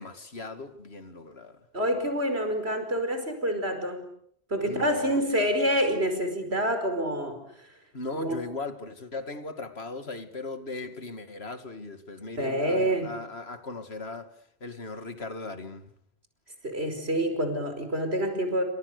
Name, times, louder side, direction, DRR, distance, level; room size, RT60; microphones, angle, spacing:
voice 1, 0.0-1.6 4.6-5.6 7.9-14.3 14.6-15.9, left 3 dB, 85° left, 2.6 m, -38 dB
voice 2, 1.7-4.0 4.5-7.4 8.2-8.4 12.4-13.1 16.6-18.6, equal, 90° right, 5.4 m, -27 dB
30.0 x 26.0 x 6.8 m
omnidirectional pair, 1.0 m